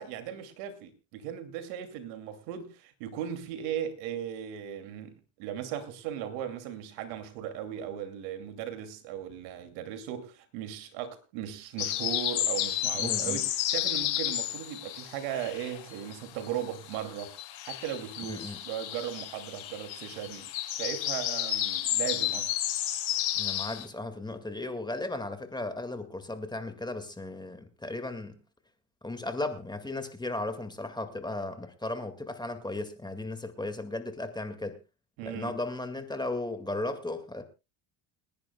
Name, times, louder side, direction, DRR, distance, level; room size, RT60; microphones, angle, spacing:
voice 1, 0.0-17.3 17.6-22.5 35.2-35.6, right 10 dB, 90° right, 2.8 m, -37 dB
sound 1, 11.8-16.1 16.4-23.8, left 12 dB, 65° left, 6.5 m, -32 dB
voice 2, 13.0-13.4 18.3-18.6 23.3-28.4 29.0-34.8 35.3-37.4, left 2 dB, 10° left, 2.1 m, -35 dB
29.5 x 10.5 x 2.3 m
cardioid pair, 110°, 48 cm